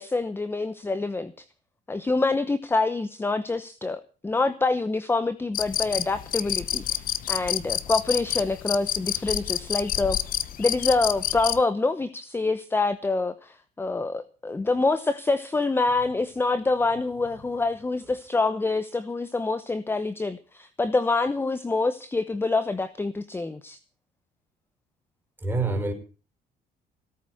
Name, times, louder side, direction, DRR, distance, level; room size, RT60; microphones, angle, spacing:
voice 1, 0.0-1.3 1.9-10.2 10.6-23.8, left 3 dB, 15° left, 0.8 m, -26 dB
sound 1, 5.5-11.6, left 11 dB, 55° left, 1.0 m, -29 dB
voice 2, 25.4-25.9, right 3 dB, 10° right, 5.1 m, -26 dB
17.5 x 8.2 x 7.8 m
cardioid pair, 110°, 17 cm